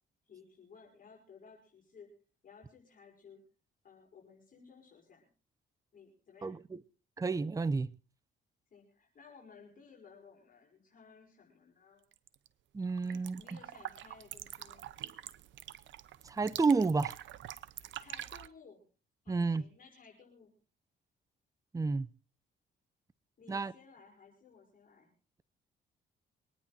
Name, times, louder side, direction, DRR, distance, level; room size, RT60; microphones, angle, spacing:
voice 1, 0.3-2.1 2.4-3.4 3.8-5.2 5.9-6.6 8.7-12.1 13.0-14.9 18.0-18.8 19.2-20.5 23.4-25.1, left 5 dB, 45° left, 5.7 m, -57 dB
voice 2, 6.4-6.8 7.2-7.9 12.7-13.4 16.2-17.2 19.3-19.6 21.7-22.1 23.5-23.7, right 4 dB, 15° right, 0.6 m, -30 dB
sound 1, 12.1-12.5 12.8-18.5, right 12 dB, 70° right, 0.8 m, -46 dB
24.0 x 9.8 x 4.2 m
cardioid pair, 90°, 20 cm